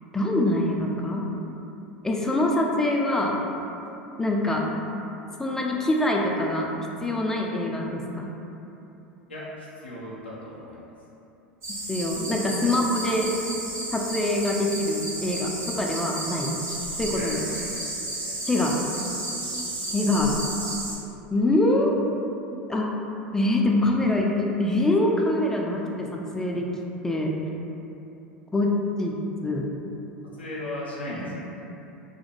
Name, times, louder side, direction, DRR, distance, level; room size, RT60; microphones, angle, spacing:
voice 1, 0.1-1.2 2.0-3.4 4.2-4.6 5.4-6.7 7.0-8.3 11.7-13.3 13.9-16.5 17.0-17.4 18.4-18.8 19.9-20.4 21.3-22.0 22.7-22.9 23.3-26.7 27.0-27.3 28.5-29.2 29.4-29.7 31.1-31.3, left 1 dB, 10° left, -1 dB, 0.3 m, -24 dB
voice 2, 9.3-10.9 17.1-17.7 18.1-18.4 30.2-31.5, left 1 dB, 90° left, -6 dB, 0.4 m, -37 dB
sound 1, 11.6-21.0, right 2 dB, 50° right, 1.2 m, -33 dB
2.5 x 2.1 x 2.9 m, 2.9 s
hypercardioid pair, 80°, 6 cm